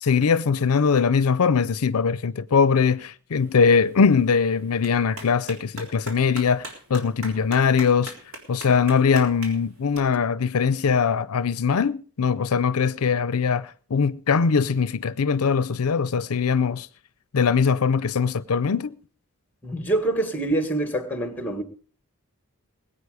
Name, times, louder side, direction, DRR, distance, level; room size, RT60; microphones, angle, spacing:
voice 1, 0.0-6.6 6.9-8.1 8.5-16.9 17.3-18.9, left 5 dB, 75° left, 0.5 m, -21 dB
Clapping, 3.3-10.0, right 2 dB, 65° right, 3.9 m, -43 dB
voice 2, 19.6-21.6, right 2 dB, 10° left, 1.7 m, -25 dB
20.5 x 8.7 x 4.9 m
head